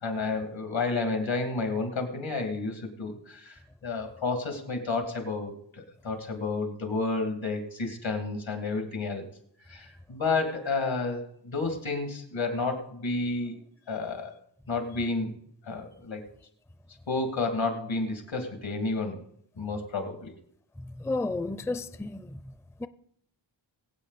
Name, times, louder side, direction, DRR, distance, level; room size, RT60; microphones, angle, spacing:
voice 1, 0.0-9.3 9.7-13.6 13.9-14.3 14.7-15.3 15.6-16.2 17.1-19.2 19.6-20.3, left 3 dB, 85° left, 2.5 m, -31 dB
voice 2, 21.0-22.2 22.8-22.9, left 2 dB, 5° left, 0.4 m, -31 dB
22.5 x 8.2 x 4.1 m
wide cardioid pair, 110°, 45 cm